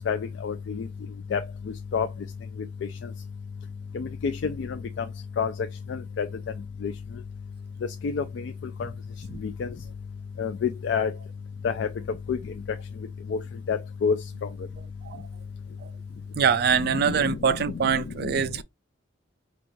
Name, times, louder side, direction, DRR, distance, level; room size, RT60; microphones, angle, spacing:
voice 1, 0.1-0.9 1.3-1.4 1.9-2.1 3.9-5.1 5.4-5.5 5.9-6.3 6.8-6.9 8.0-8.5 8.8-8.9 9.4-9.7 10.4-11.1 11.6-11.9 12.3-12.4 13.3-13.4 13.7-14.2 16.9-17.6 17.8-18.3, left 6 dB, 70° left, 0.3 m, -28 dB
voice 2, 16.4-18.6, right 6 dB, 55° right, 0.4 m, -24 dB
5.0 x 2.4 x 3.0 m
head